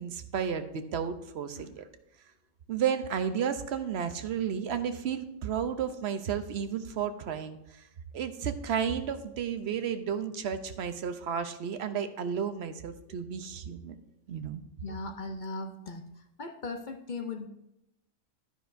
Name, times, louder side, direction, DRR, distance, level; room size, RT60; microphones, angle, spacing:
voice 1, 0.0-1.9 2.7-7.9 8.1-14.0 14.3-14.6, right 7 dB, 60° right, 9 dB, 0.8 m, -32 dB
voice 2, 14.8-16.1 16.4-17.5, left 3 dB, 50° left, 5 dB, 0.6 m, -38 dB
11.0 x 10.0 x 2.6 m, 0.84 s
omnidirectional pair, 1.4 m